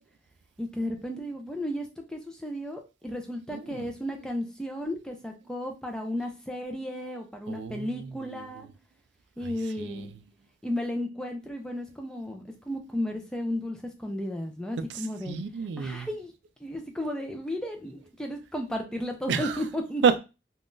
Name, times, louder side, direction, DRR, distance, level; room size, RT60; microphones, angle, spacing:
voice 1, 0.6-8.7 9.4-10.1 10.6-15.4 15.8-16.3 16.6-20.0, left 1 dB, 5° left, 0.4 m, -34 dB
voice 2, 3.5-3.9 7.5-8.5 9.4-10.1 14.9-16.1 19.3-19.6 20.0-20.2, right 6 dB, 85° right, 0.3 m, -30 dB
3.5 x 2.3 x 2.5 m
head